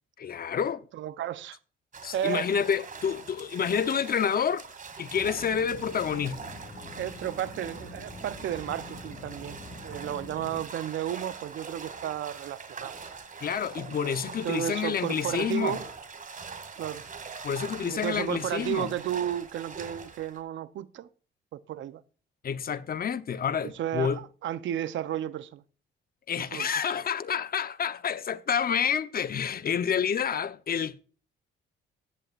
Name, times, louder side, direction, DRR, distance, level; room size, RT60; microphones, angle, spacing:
voice 1, 0.2-0.8 2.0-4.6 5.0-6.4 13.4-15.8 17.4-18.9 22.4-24.2 26.3-31.0, left 7 dB, 50° left, 0.9 m, -29 dB
voice 2, 0.9-1.6 2.1-2.5 6.2-6.3 7.0-9.6 9.8-12.9 13.9-14.0 14.4-15.8 16.8-17.0 17.8-21.1 21.5-22.0 23.6-25.6 26.5-26.9, right 11 dB, 75° right, 0.9 m, -33 dB
sound 1, 1.9-20.4, right 5 dB, 40° right, 2.6 m, -43 dB
sound 2, 5.1-10.6, left 2 dB, 30° left, 5.3 m, -45 dB
15.5 x 11.0 x 2.6 m
cardioid pair, 90°, 20 cm